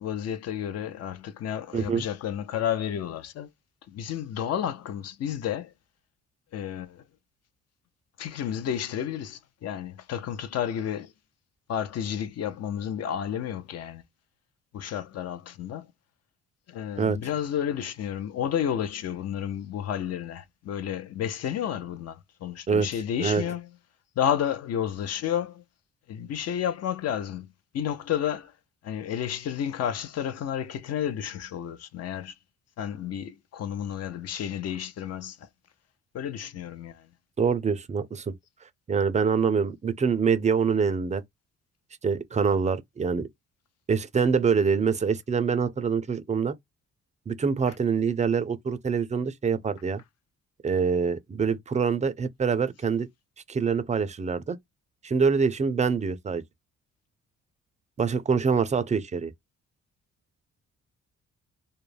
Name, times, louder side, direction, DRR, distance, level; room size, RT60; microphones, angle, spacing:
voice 1, 0.0-3.5 3.9-5.7 6.5-7.0 8.2-11.1 11.7-14.0 14.7-15.9 16.7-23.7 24.2-25.6 26.1-28.5 28.8-32.3 32.8-35.4 36.1-37.1, left 9 dB, 55° left, 0.5 m, -31 dB
voice 2, 1.7-2.1 17.0-17.2 22.7-22.9 23.2-23.4 37.4-38.3 38.9-41.2 42.0-43.3 43.9-46.5 47.3-50.0 50.6-53.1 53.5-54.6 55.0-56.4 58.0-59.3, right 5 dB, 25° right, 0.4 m, -25 dB
2.3 x 2.0 x 3.1 m
cardioid pair, 90°, 30 cm